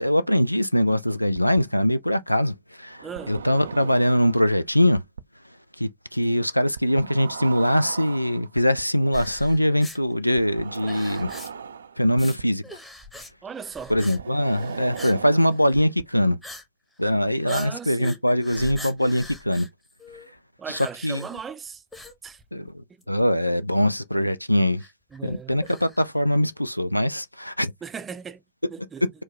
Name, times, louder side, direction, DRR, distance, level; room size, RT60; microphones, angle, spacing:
voice 1, 0.0-5.0 5.8-11.3 12.0-12.6 13.9-16.4 17.0-19.7 20.7-21.2 22.5-24.8 25.2-27.7, equal, 90° left, 0.3 m, -22 dB
sound 1, 1.4-1.6 2.9-4.5 5.0-5.2 6.8-8.8 10.4-12.4 14.0-16.0, right 6 dB, 70° right, 0.3 m, -37 dB
voice 2, 3.0-3.4 13.4-13.9 17.4-18.2 20.6-21.8 22.2-22.4 22.9-23.0 25.1-25.6 27.8-28.4 28.7-29.0, right 6 dB, 20° right, 0.5 m, -37 dB
sound 2, 9.1-10.0 10.7-11.7 12.1-12.4 12.6-13.3 13.6-14.2 14.4-15.2 15.5-15.8 16.4-16.6 17.0-17.1 17.5-20.3 20.7-21.5 21.9-22.7 23.0-23.1 23.8-23.9 24.8-26.1, left 2 dB, 10° left, 1.0 m, -42 dB
4.5 x 2.2 x 2.8 m
figure-of-eight pair, 90°, 0 cm